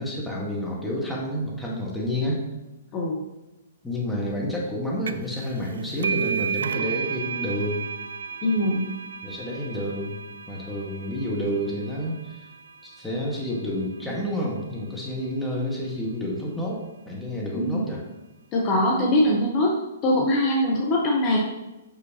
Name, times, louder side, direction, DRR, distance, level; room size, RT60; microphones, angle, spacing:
voice 1, 0.0-2.4 3.8-7.8 9.2-10.2 10.5-12.4 12.8-18.0, equal, 5° left, -4 dB, 1.4 m, -29 dB
sound 1, 5.1-5.4 5.6-13.0, right 7 dB, 65° right, 0.3 m, -32 dB
voice 2, 8.4-8.9 17.5-17.8 18.5-19.7 20.0-21.4, left 1 dB, 30° left, -2 dB, 0.9 m, -22 dB
6.1 x 5.6 x 2.8 m, 0.99 s
figure-of-eight pair, 115°, 0 cm